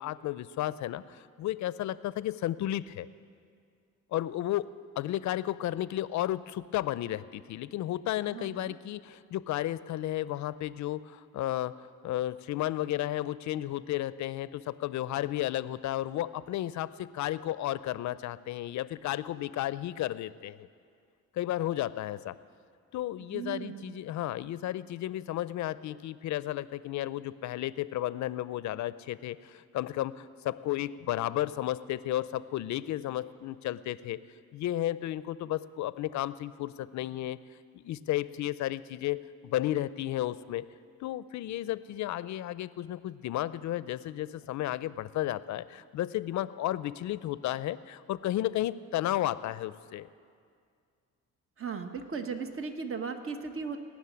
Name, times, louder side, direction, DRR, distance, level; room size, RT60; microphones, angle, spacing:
voice 1, 0.0-3.1 4.1-4.7 5.0-20.7 21.3-22.4 22.9-34.2 34.5-37.4 37.7-40.7 41.0-50.1, left 14 dB, 70° left, 17 dB, 0.5 m, -33 dB
voice 2, 8.3-8.7 23.3-24.0 51.6-53.8, right 5 dB, 45° right, 7 dB, 1.2 m, -37 dB
18.5 x 6.4 x 9.7 m, 2.2 s
cardioid pair, 90°, 30 cm